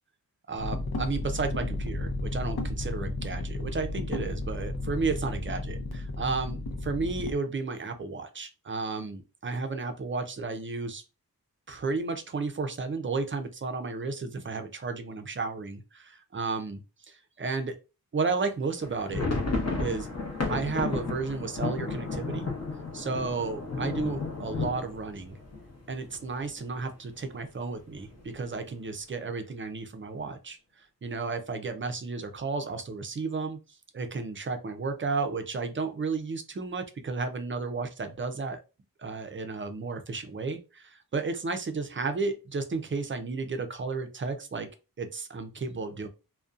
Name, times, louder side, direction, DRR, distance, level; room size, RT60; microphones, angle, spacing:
voice 1, 0.5-11.0 11.7-17.7 18.1-19.3 19.8-20.1 20.5-22.5 22.9-25.4 25.9-28.1 28.3-30.6 31.0-33.6 33.9-38.6 39.0-44.7 45.0-46.1, right 4 dB, 35° right, 7 dB, 0.4 m, -33 dB
sound 1, 0.6-7.3, left 2 dB, 80° left, 0.7 m, -33 dB
sound 2, 18.8-26.5 26.8-26.9 27.2-27.4 28.0-28.4, left 3 dB, 45° left, 0.7 m, -33 dB
2.5 x 2.1 x 2.4 m, 0.30 s
wide cardioid pair, 95°, 37 cm